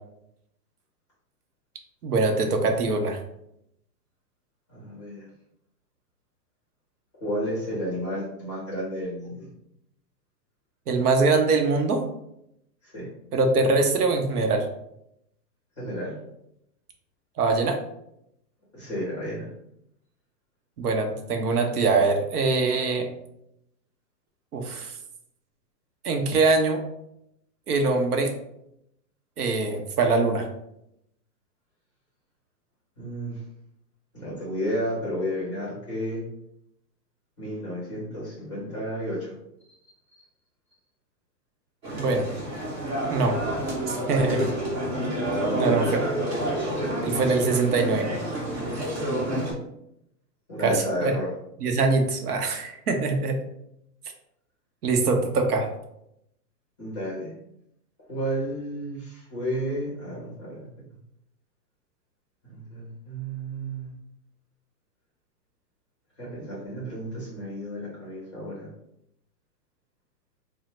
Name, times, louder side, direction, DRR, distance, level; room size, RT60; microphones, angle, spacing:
voice 1, 2.0-3.2 10.9-12.0 13.3-14.7 17.4-17.8 20.8-23.1 24.5-25.0 26.0-26.8 27.7-28.3 29.4-30.5 41.9-42.3 43.1-43.4 43.9-44.5 45.6-45.9 47.0-48.1 50.6-51.1 51.6-53.3 54.8-55.7, right 3 dB, 65° right, 4 dB, 0.7 m, -23 dB
voice 2, 4.7-5.3 7.2-9.5 12.8-13.1 15.8-16.2 18.7-19.5 33.0-33.4 34.1-36.2 37.4-39.3 45.4-45.8 49.2-49.4 50.5-51.3 56.8-57.3 58.1-60.7 62.5-63.9 66.2-68.7, equal, 20° left, -7 dB, 0.6 m, -32 dB
sound 1, 41.8-49.5, right 1 dB, 40° right, 1.0 m, -29 dB
2.9 x 2.0 x 3.1 m, 0.79 s
hypercardioid pair, 175°, 49 cm